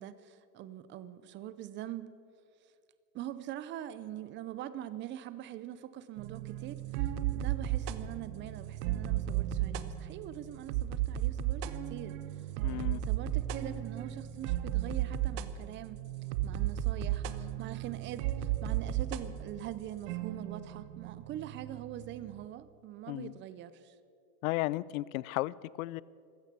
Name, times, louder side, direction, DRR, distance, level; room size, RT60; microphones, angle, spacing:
voice 1, 0.0-2.1 3.1-12.2 12.7-16.0 16.4-23.9, right 12 dB, 25° right, 0.6 m, -43 dB
sound 1, 6.2-22.4, right 12 dB, 55° right, 1.0 m, -35 dB
voice 2, 12.6-13.0 23.1-23.3 24.4-26.0, left 18 dB, 65° left, 0.5 m, -34 dB
16.0 x 12.5 x 6.8 m
supercardioid pair, 140°, 44 cm